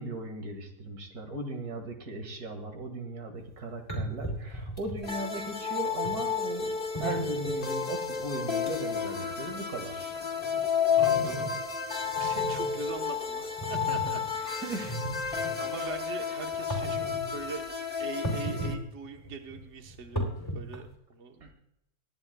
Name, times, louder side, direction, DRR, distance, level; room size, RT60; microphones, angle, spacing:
voice 1, 0.0-10.1 10.9-11.0 14.4-15.0 15.8-15.9 21.4-21.5, right 2 dB, 85° right, 4 dB, 2.4 m, -38 dB
sound 1, 3.4-3.5 3.9-5.1 6.0-6.2 6.9-7.6 8.2-8.3 8.7-8.8 9.1-9.4 9.9-11.7 12.0-12.8 13.6-14.1 14.7-15.5 16.5-17.3 18.2-18.8 19.1-20.9, right 1 dB, 20° left, 2.9 m, -36 dB
sound 2, 5.0-18.7, left 6 dB, 40° left, 1.4 m, -31 dB
voice 2, 11.0-11.5 11.9-14.2 14.5-15.0 15.3-17.7 18.0-21.5, right 5 dB, 50° right, 4 dB, 1.4 m, -42 dB
24.5 x 10.5 x 2.3 m, 0.77 s
omnidirectional pair, 1.6 m